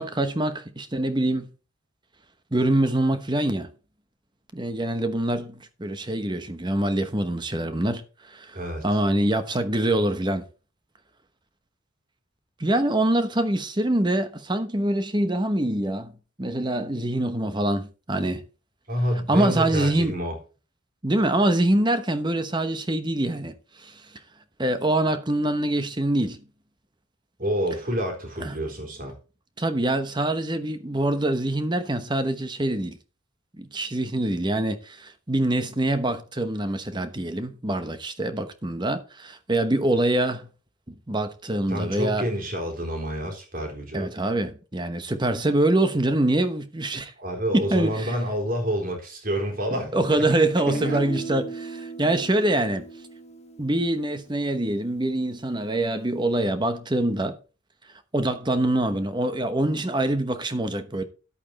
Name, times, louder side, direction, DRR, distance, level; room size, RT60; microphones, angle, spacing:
voice 1, 0.0-1.5 2.5-3.7 4.5-8.6 8.8-10.4 12.6-16.1 16.4-18.4 19.3-20.1 21.0-24.0 24.6-26.4 28.4-28.5 29.6-33.0 33.6-40.5 40.9-42.2 43.9-47.1 47.5-48.1 49.9-52.8 53.6-57.4 58.1-61.0, right 1 dB, 20° right, 1.0 m, -24 dB
voice 2, 8.5-9.0 18.9-20.4 27.4-29.2 41.7-44.1 47.2-50.3 50.6-51.0, equal, 45° right, 3.7 m, -28 dB
Guitar, 50.7-54.6, right 2 dB, 35° left, 1.2 m, -37 dB
11.0 x 8.4 x 4.2 m
head